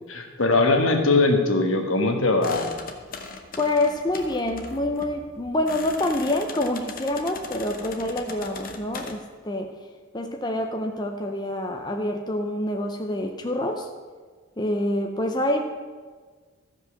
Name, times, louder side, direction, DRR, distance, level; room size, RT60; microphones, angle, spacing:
voice 1, 0.1-2.7, left 2 dB, 70° left, 4 dB, 1.3 m, -21 dB
sound 1, 2.4-9.1, left 4 dB, 40° left, 1.0 m, -39 dB
voice 2, 3.6-9.7 10.1-13.9 14.6-15.6, left 1 dB, 20° left, 3 dB, 0.6 m, -26 dB
14.0 x 5.2 x 6.3 m, 1.5 s
head